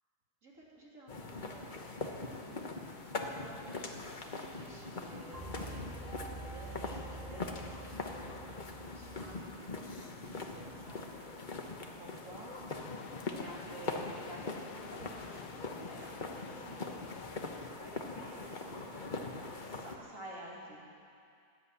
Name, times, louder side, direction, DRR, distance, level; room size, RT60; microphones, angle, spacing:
voice 1, 0.4-2.6 3.2-5.9 6.4-8.5 8.8-11.6 12.0-12.5 13.3-17.0 17.8-18.9 19.6-20.8, right 1 dB, 50° right, -5 dB, 3.4 m, -52 dB
sound 1, 1.1-20.0, left 3 dB, 35° left, 1.1 m, -42 dB
Computer Startup Music, 5.3-9.5, right 2 dB, 25° right, 3.3 m, -47 dB
sound 2, 12.7-17.7, left 8 dB, 80° left, 1.3 m, -51 dB
16.0 x 11.0 x 8.5 m, 2.4 s
omnidirectional pair, 1.7 m